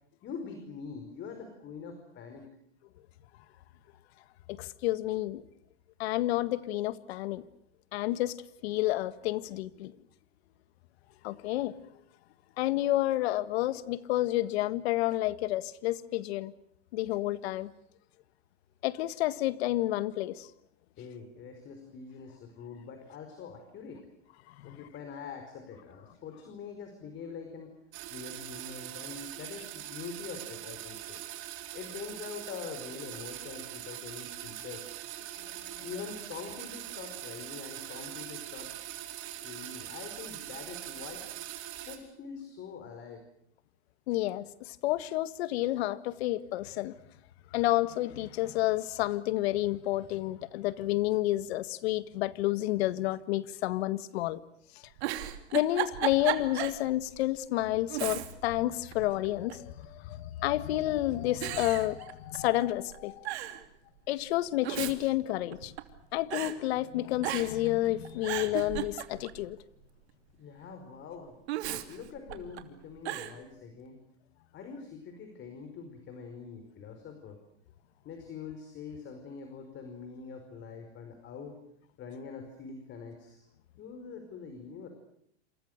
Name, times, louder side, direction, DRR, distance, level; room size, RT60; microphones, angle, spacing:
voice 1, 0.2-2.5 21.0-24.1 24.6-27.7 28.1-31.2 31.7-35.0 35.8-38.7 39.2-41.2 41.7-43.2 70.4-71.3 71.9-74.0 74.5-77.4 78.0-81.6 82.0-83.4 83.8-84.9, left 5 dB, 35° left, 6 dB, 5.0 m, -44 dB
voice 2, 4.5-5.4 6.0-7.5 7.9-8.4 8.6-9.9 11.2-11.7 12.6-16.5 16.9-17.7 18.8-20.5 24.6-24.8 44.1-47.0 47.5-54.4 55.5-63.3 64.1-65.7 66.1-69.6, left 16 dB, 60° left, 14 dB, 1.8 m, -30 dB
sound 1, 27.9-42.0, right 13 dB, 45° right, 4.9 m, -42 dB
Giggle, 54.8-56.8 57.2-57.3 57.9-58.6 58.9-59.7 60.5-60.9 61.4-62.6 62.9-63.0 63.2-63.6 64.4-66.0 66.3-66.6 67.2-67.7 68.0-69.4 71.5-72.6 73.0-73.4, right 14 dB, 65° right, 3.0 m, -35 dB
28.0 x 27.5 x 6.7 m, 0.70 s
hypercardioid pair, 130°, 35 cm